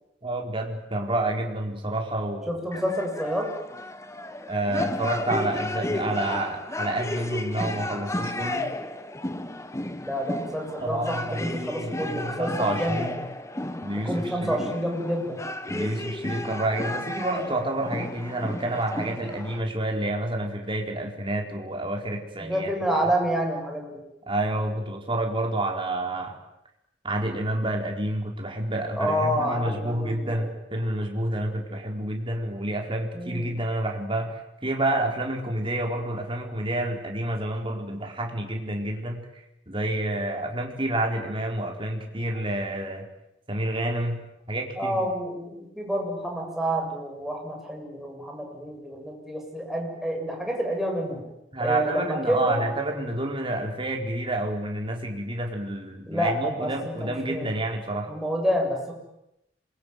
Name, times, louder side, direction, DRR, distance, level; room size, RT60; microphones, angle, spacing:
voice 1, 0.2-2.8 4.5-8.7 10.8-13.3 13.8-14.6 15.7-22.7 24.3-26.4 27.0-39.3 39.7-43.1 43.5-45.1 51.5-58.1, right 1 dB, 30° right, 2 dB, 4.6 m, -29 dB
voice 2, 2.5-3.5 10.0-13.1 14.0-15.4 22.4-24.0 29.0-30.5 33.1-33.5 44.8-51.2 51.6-52.7 56.1-57.6 58.1-58.9, equal, ahead, 0 dB, 7.5 m, -28 dB
sound 1, 2.7-19.6, left 1 dB, 15° left, 1.5 m, -33 dB
27.0 x 22.5 x 9.5 m, 0.86 s
head